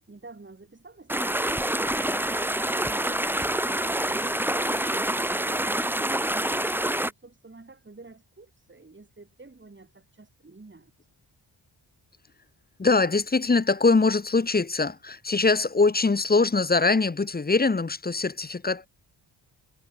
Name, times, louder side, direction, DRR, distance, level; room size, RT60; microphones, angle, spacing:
voice 1, 0.0-2.5 2.9-10.9, right 3 dB, 25° right, 3.8 m, -49 dB
sound 1, 1.1-7.1, right 1 dB, 5° right, 1.0 m, -26 dB
voice 2, 12.8-18.9, left 3 dB, 20° left, 0.9 m, -22 dB
cardioid pair, 70°, 45 cm